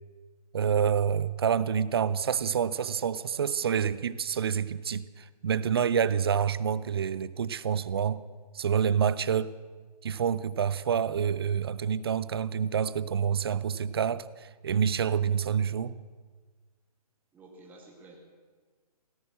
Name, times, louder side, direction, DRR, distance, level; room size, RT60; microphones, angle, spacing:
voice 1, 0.5-8.2 8.5-9.5 10.0-16.0, right 7 dB, 40° right, 18 dB, 0.5 m, -27 dB
voice 2, 15.4-15.9 17.3-18.2, right 2 dB, 10° right, 0 dB, 1.8 m, -53 dB
17.5 x 11.0 x 7.5 m, 1.4 s
figure-of-eight pair, 140°, 20 cm